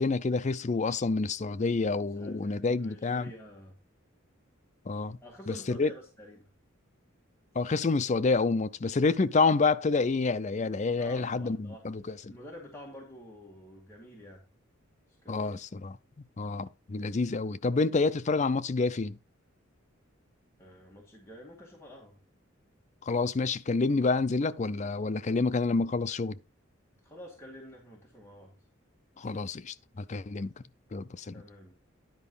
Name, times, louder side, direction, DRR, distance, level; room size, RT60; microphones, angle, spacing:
voice 1, 0.0-3.3 4.9-5.2 5.5-5.9 7.6-12.1 15.3-16.0 16.4-19.2 23.0-26.4 29.2-30.5 30.9-31.4, left 3 dB, 35° left, 0.4 m, -28 dB
voice 2, 2.2-3.8 5.2-6.5 11.0-11.9 12.3-14.4 15.2-15.6 20.6-22.2 27.0-28.5 30.4-30.5 31.3-31.7, equal, 10° left, 1.9 m, -49 dB
10.5 x 4.8 x 5.4 m
head